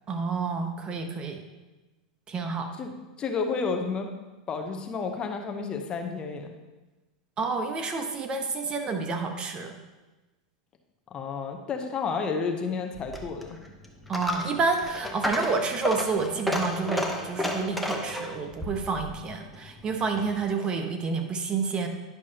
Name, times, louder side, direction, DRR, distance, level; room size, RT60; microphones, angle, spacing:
voice 1, 0.1-1.4 2.3-2.7 7.4-9.7 14.1-21.9, right 4 dB, 25° right, 5 dB, 0.9 m, -29 dB
voice 2, 3.2-4.1 4.5-6.5 11.1-13.6, left 5 dB, 30° left, 4 dB, 0.8 m, -31 dB
Coin (dropping), 12.9-20.4, left 1 dB, ahead, 1.0 m, -33 dB
10.0 x 6.2 x 2.9 m, 1.1 s
hypercardioid pair, 110°, 3 cm